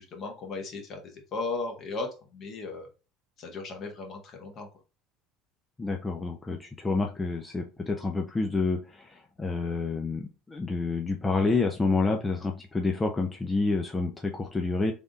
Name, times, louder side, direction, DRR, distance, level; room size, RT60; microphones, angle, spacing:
voice 1, 0.0-2.9 3.4-4.7, left 3 dB, 50° left, 2 dB, 1.4 m, -36 dB
voice 2, 5.8-14.9, left 3 dB, 20° left, 2 dB, 0.6 m, -28 dB
3.5 x 2.6 x 3.6 m, 0.32 s
hypercardioid pair, 80°, 0 cm